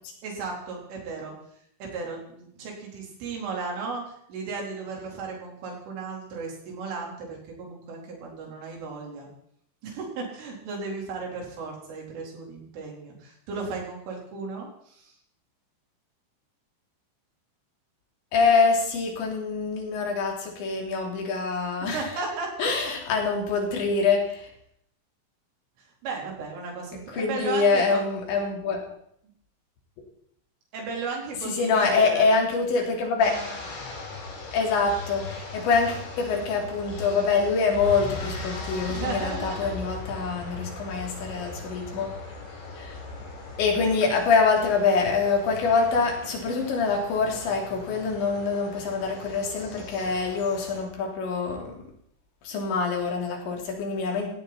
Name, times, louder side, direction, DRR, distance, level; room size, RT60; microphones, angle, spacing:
voice 1, 0.2-1.3 1.8-9.3 9.8-15.1 21.8-22.7 26.0-28.0 30.7-32.3 38.9-39.7, right 4 dB, 85° right, -1 dB, 6.8 m, -35 dB
voice 2, 18.3-22.1 22.6-24.5 27.1-28.8 31.5-33.4 34.5-42.2 42.8-43.0 43.6-51.8 52.4-54.3, left 4 dB, 70° left, 1 dB, 5.6 m, -25 dB
sound 1, 33.2-50.8, left 3 dB, 90° left, 7.8 m, -39 dB
17.5 x 17.5 x 4.4 m, 0.68 s
omnidirectional pair, 5.5 m